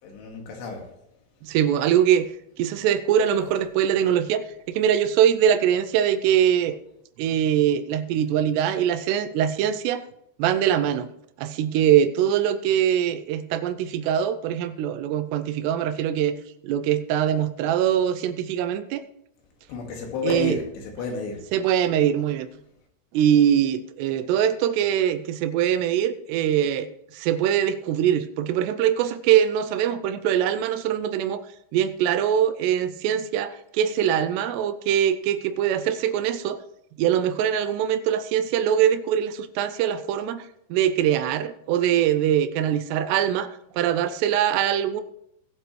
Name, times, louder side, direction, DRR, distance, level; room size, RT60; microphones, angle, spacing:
voice 1, 0.0-0.9 19.7-21.4, left 3 dB, 80° left, 1 dB, 4.2 m, -31 dB
voice 2, 1.4-2.3 2.6-6.8 7.2-10.1 10.4-11.1 11.4-16.4 16.6-19.0 20.2-20.6 21.5-22.5 23.1-26.9 27.1-31.4 31.7-36.6 37.0-40.4 40.7-45.0, right 10 dB, 80° right, 12 dB, 2.7 m, -22 dB
19.5 x 7.9 x 3.2 m, 0.77 s
omnidirectional pair, 4.9 m